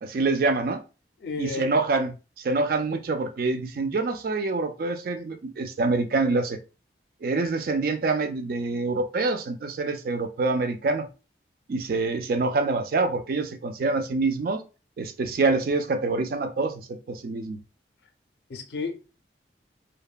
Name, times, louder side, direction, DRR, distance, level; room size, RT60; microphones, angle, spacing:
voice 1, 0.0-0.8 1.4-6.6 7.2-11.1 11.7-14.6 15.0-16.8 17.1-17.6, right 3 dB, 55° right, 0.4 m, -26 dB
voice 2, 1.2-1.7 18.5-19.0, left 4 dB, 65° left, 0.4 m, -32 dB
2.8 x 2.2 x 2.3 m
head